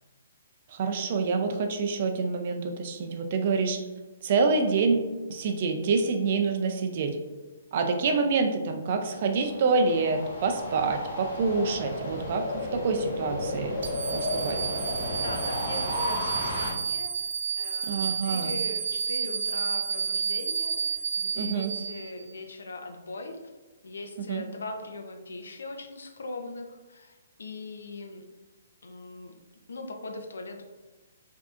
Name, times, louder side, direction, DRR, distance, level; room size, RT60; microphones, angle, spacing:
voice 1, 0.7-3.8 4.2-5.0 5.3-7.2 7.7-13.8 14.1-14.6 17.9-18.5 21.3-21.7 24.3-24.4, right 4 dB, 35° right, 5 dB, 0.4 m, -27 dB
sound 1, 9.0-16.7, left 1 dB, 35° left, 1.3 m, -33 dB
sound 2, 13.8-22.3, right 6 dB, 70° right, 0.9 m, -31 dB
voice 2, 15.1-23.4 23.8-28.3 28.8-29.3 29.7-30.6, left 2 dB, 85° left, 5 dB, 0.6 m, -40 dB
4.7 x 2.7 x 2.4 m, 1.2 s
hypercardioid pair, 175°, 0 cm